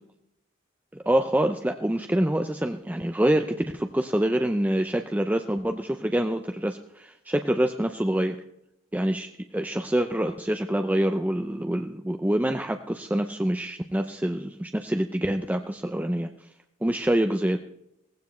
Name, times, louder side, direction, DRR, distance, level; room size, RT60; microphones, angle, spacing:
voice 1, 0.9-8.4 8.9-16.3 16.8-17.6, right 1 dB, 10° right, 6 dB, 0.5 m, -26 dB
17.5 x 15.5 x 3.1 m, 0.76 s
head